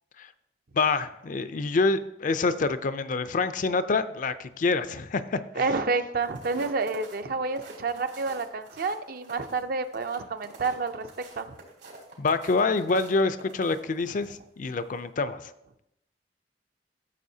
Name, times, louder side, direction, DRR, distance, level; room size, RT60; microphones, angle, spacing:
voice 1, 0.7-5.4 12.2-15.4, left 3 dB, 45° left, 12 dB, 0.4 m, -26 dB
voice 2, 5.5-11.1 11.4-11.5, right 4 dB, 55° right, 9 dB, 0.6 m, -29 dB
sound 1, 6.1-14.3 14.8-15.0, right 3 dB, 80° right, 3.1 m, -48 dB
13.5 x 7.0 x 2.8 m, 0.82 s
head